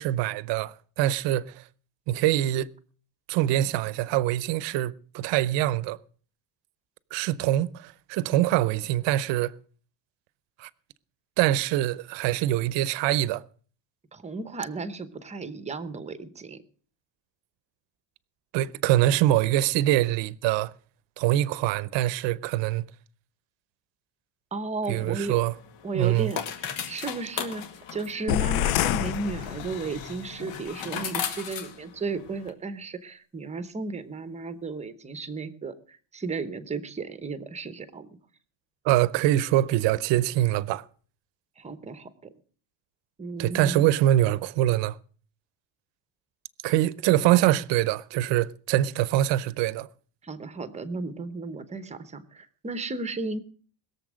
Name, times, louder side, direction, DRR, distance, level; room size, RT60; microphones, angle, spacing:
voice 1, 0.0-1.7 2.1-2.7 3.3-6.0 7.1-9.5 10.6-10.7 11.4-13.4 18.5-20.7 21.2-22.8 24.9-25.5 25.9-26.3 38.8-40.8 43.4-45.0 46.6-49.9, right 14 dB, 60° right, 0.7 m, -24 dB
voice 2, 14.1-16.6 24.5-25.4 25.8-26.4 26.9-38.1 41.6-42.3 43.2-43.9 50.2-53.4, right 3 dB, 15° right, 0.8 m, -34 dB
sound 1, 24.8-32.5, left 8 dB, 70° left, 2.3 m, -37 dB
sound 2, 28.3-30.1, left 13 dB, 85° left, 0.7 m, -27 dB
21.0 x 7.2 x 6.2 m
cardioid pair, 175°, 49 cm